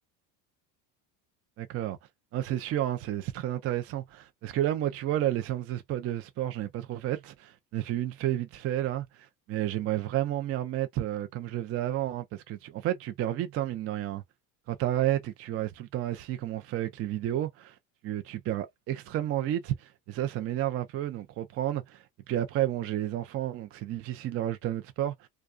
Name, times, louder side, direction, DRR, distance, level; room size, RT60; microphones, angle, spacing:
voice 1, 1.6-2.0 2.3-14.2 14.7-17.7 18.0-25.3, right 12 dB, 35° right, 0.4 m, -31 dB
2.3 x 2.3 x 2.4 m
supercardioid pair, 100°, 47 cm